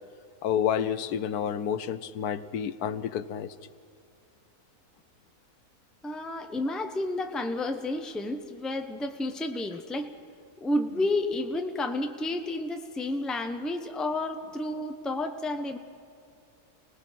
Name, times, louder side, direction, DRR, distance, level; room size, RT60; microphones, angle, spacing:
voice 1, 0.4-3.5 6.5-6.6, left 9 dB, 75° left, 14 dB, 1.2 m, -29 dB
voice 2, 6.0-10.1 10.6-15.8, left 2 dB, ahead, 5 dB, 0.7 m, -31 dB
29.0 x 19.0 x 5.8 m, 2.4 s
omnidirectional pair, 1.7 m